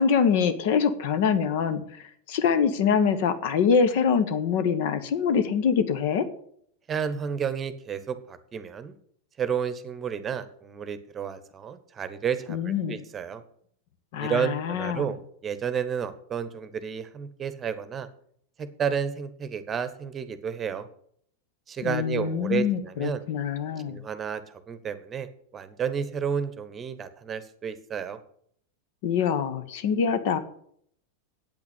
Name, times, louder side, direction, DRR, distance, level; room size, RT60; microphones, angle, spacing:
voice 1, 0.0-6.3 12.5-13.0 14.1-15.0 21.8-24.0 29.0-30.4, left 6 dB, 50° left, 11 dB, 1.2 m, -24 dB
voice 2, 6.9-8.9 9.4-13.4 14.2-15.2 15.4-18.1 18.6-20.9 21.7-23.2 23.9-25.3 25.5-28.2, right 7 dB, 25° right, 13 dB, 1.1 m, -31 dB
8.9 x 8.5 x 8.3 m, 0.65 s
figure-of-eight pair, 90°, 0 cm